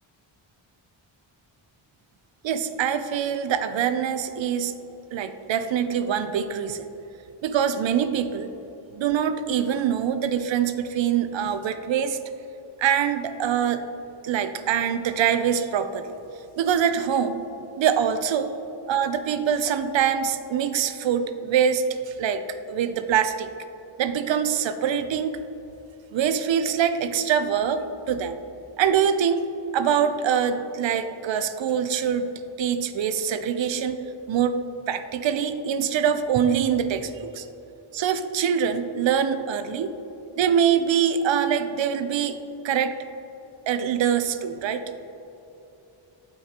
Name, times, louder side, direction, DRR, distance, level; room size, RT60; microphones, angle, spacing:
voice 1, 2.4-4.7 5.1-6.9 7.4-8.5 8.9-12.2 12.8-13.8 14.2-16.1 16.6-17.4 17.8-18.5 18.9-22.4 22.7-23.5 24.0-25.4 26.1-28.4 28.8-29.5 29.7-32.3 32.6-34.0 34.3-34.6 34.9-37.5 37.9-39.9 40.4-42.4 42.6-43.0 43.7-44.8, right 8 dB, 65° right, 11 dB, 0.5 m, -24 dB
8.3 x 5.5 x 2.9 m, 3.0 s
wide cardioid pair, 155°, 49 cm